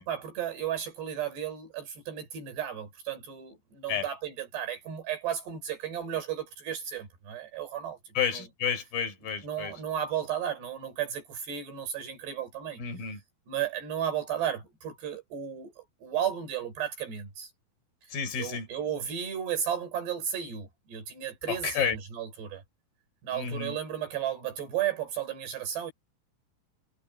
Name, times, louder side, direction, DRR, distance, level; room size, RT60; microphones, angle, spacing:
voice 1, 0.1-8.4 9.4-12.8 13.5-17.5 18.0-22.6 23.2-25.9, right 9 dB, 85° right, 7.2 m, -34 dB
voice 2, 8.1-9.7 12.8-13.2 18.1-18.7 21.5-22.0 23.3-23.8, left 7 dB, 60° left, 6.3 m, -31 dB
omnidirectional pair, 4.7 m